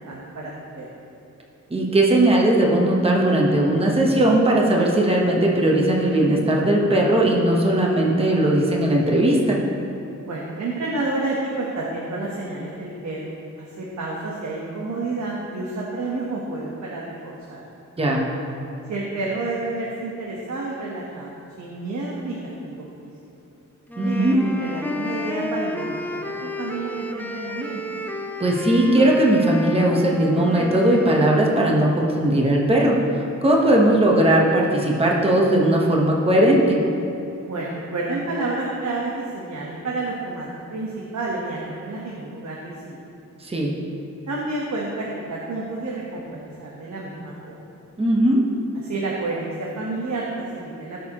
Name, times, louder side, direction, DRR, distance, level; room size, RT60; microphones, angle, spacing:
voice 1, 0.1-0.9 10.2-17.6 18.9-23.1 24.0-27.8 37.5-43.0 44.3-47.6 48.8-51.1, right 2 dB, 60° right, -4 dB, 1.2 m, -30 dB
voice 2, 1.7-9.6 18.0-18.2 24.0-24.4 28.4-36.8 43.4-43.7 48.0-48.4, right 1 dB, 20° right, -2 dB, 1.1 m, -18 dB
sound 1, 23.9-31.4, left 1 dB, 5° left, 0.4 m, -31 dB
17.5 x 6.5 x 3.0 m, 2.7 s
wide cardioid pair, 170°, 31 cm